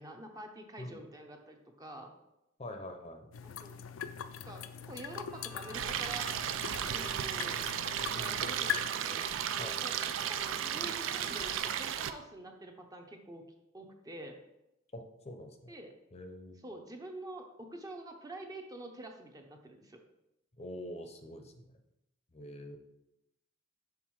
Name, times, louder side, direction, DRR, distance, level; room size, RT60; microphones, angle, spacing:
voice 1, 0.0-2.1 3.4-3.7 4.4-6.3 6.8-7.6 8.1-9.3 9.7-13.5 13.7-14.4 15.7-15.9 16.6-20.0, right 1 dB, 20° right, 3 dB, 0.6 m, -47 dB
voice 2, 2.6-3.3 8.1-8.4 9.6-9.8 14.9-15.7 16.1-16.6 20.6-21.8 22.3-22.8, left 1 dB, 35° left, 5 dB, 0.6 m, -45 dB
sound 1, 3.3-8.9, left 8 dB, 80° left, 0.4 m, -41 dB
sound 2, 5.3-11.6, right 3 dB, 50° right, 1.2 m, -49 dB
Stream, 5.7-12.1, right 9 dB, 70° right, 0.4 m, -35 dB
5.8 x 3.9 x 4.7 m, 0.88 s
head